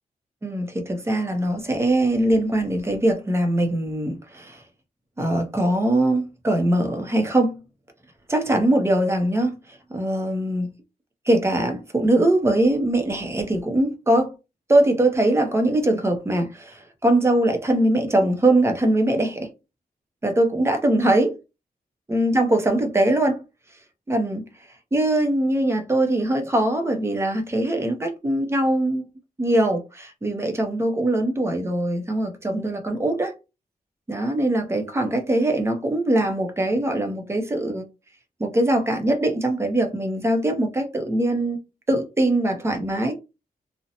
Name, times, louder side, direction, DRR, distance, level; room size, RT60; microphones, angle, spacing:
voice 1, 0.4-4.6 5.2-7.6 8.3-9.5 9.9-10.7 11.3-14.3 14.7-19.5 20.2-21.4 22.1-23.4 24.1-24.4 24.9-29.0 29.4-33.3 34.1-37.8 38.4-41.6 41.9-43.1, right 1 dB, 15° right, 0.5 m, -22 dB
2.6 x 2.0 x 2.7 m
wide cardioid pair, 175°, 15 cm